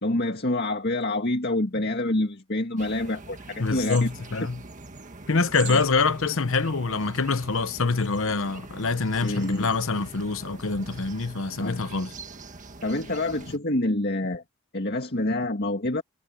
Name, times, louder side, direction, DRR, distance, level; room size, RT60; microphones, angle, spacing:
voice 1, 0.0-4.1 5.6-5.8 9.2-9.7 11.6-11.8 12.8-14.4 14.7-16.0, left 2 dB, 45° left, 2.0 m, -27 dB
sound 1, 2.8-13.6, right 4 dB, 35° right, 1.6 m, -43 dB
voice 2, 3.6-4.6 5.3-12.1, left 4 dB, 60° left, 0.9 m, -25 dB
head